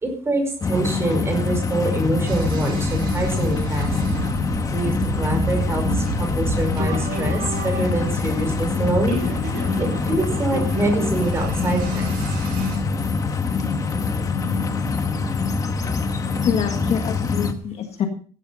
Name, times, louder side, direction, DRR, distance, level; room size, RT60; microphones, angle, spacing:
voice 1, 0.0-3.9 4.7-5.8 6.1-9.2 9.8-12.0, right 2 dB, 15° right, 3 dB, 5.0 m, -25 dB
sound 1, 0.6-17.5, left 4 dB, 20° left, 1.2 m, -24 dB
sound 2, 2.2-12.8, right 5 dB, 75° right, 5.8 m, -31 dB
voice 2, 16.2-18.1, left 9 dB, 40° left, 5 dB, 1.7 m, -26 dB
15.5 x 12.5 x 4.1 m, 0.42 s
cardioid pair, 175°, 16 cm